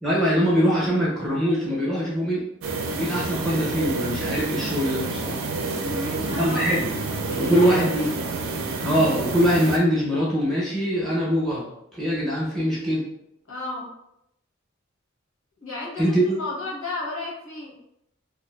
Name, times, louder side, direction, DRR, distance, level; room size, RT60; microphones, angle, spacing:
voice 1, 0.0-2.4 2.9-5.4 6.3-6.9 7.4-8.1 8.8-11.6 11.9-13.0 16.0-16.4, equal, ahead, -7 dB, 0.5 m, -22 dB
sound 1, 2.6-9.8, right 3 dB, 80° right, 0.4 m, -29 dB
voice 2, 5.8-6.7 7.2-8.1 13.5-13.9 15.6-17.7, left 2 dB, 85° left, -5 dB, 0.9 m, -33 dB
2.4 x 2.3 x 2.2 m, 0.81 s
head